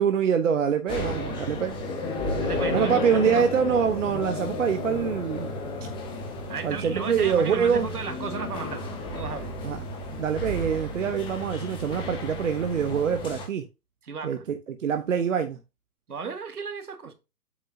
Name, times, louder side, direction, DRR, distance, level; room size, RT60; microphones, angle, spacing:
voice 1, 0.0-1.8 2.7-5.5 6.6-7.9 9.6-9.8 10.2-13.6 14.2-15.6, right 7 dB, 55° right, 0.9 m, -25 dB
sound 1, 0.9-13.4, left 2 dB, 10° left, 1.1 m, -33 dB
voice 2, 0.9-1.6 2.4-3.0 3.2-3.5 6.5-9.5 14.0-14.5 16.1-17.1, right 5 dB, 75° right, 1.7 m, -35 dB
8.2 x 5.6 x 2.7 m
figure-of-eight pair, 135°, 46 cm